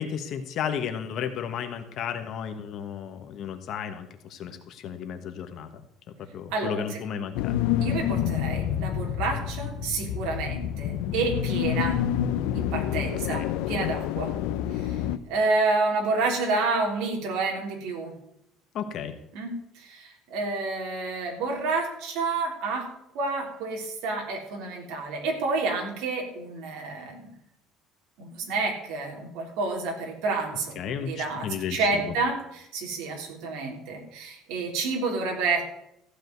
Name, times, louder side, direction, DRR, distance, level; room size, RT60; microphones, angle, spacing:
voice 1, 0.0-5.8 6.3-7.5 13.3-13.5 18.7-19.1 30.7-32.1, left 8 dB, 45° left, 7 dB, 1.2 m, -33 dB
voice 2, 6.5-7.0 7.8-12.0 12.5-13.4 13.7-14.3 14.7-18.1 19.3-22.9 23.1-27.3 28.2-30.7 31.0-35.6, right 3 dB, 70° right, 1 dB, 3.5 m, -29 dB
sound 1, 7.3-15.2, left 11 dB, 85° left, 0.7 m, -28 dB
sound 2, 8.2-15.1, left 7 dB, 5° left, 1.8 m, -40 dB
15.0 x 5.0 x 9.4 m, 0.80 s
cardioid pair, 170°, 0 cm